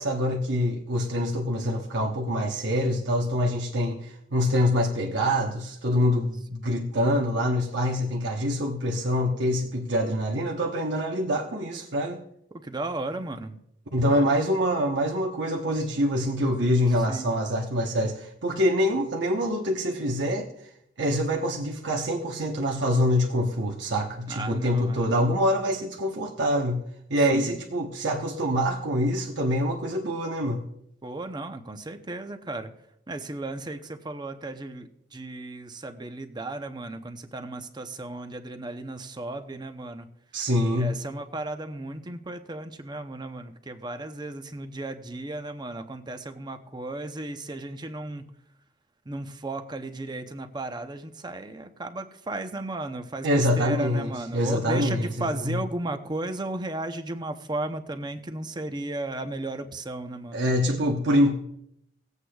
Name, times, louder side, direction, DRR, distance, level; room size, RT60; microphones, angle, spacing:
voice 1, 0.0-12.2 13.9-20.5 21.0-26.8 27.1-30.6 40.3-40.9 53.2-55.6 60.3-61.3, equal, 70° right, 0 dB, 1.0 m, -25 dB
voice 2, 12.6-13.6 14.1-14.3 17.1-17.3 24.3-25.1 27.3-27.5 31.0-32.7 33.1-40.1 40.8-48.2 49.1-60.5, right 2 dB, 25° right, 7 dB, 0.7 m, -35 dB
19.0 x 8.2 x 2.3 m, 0.76 s
head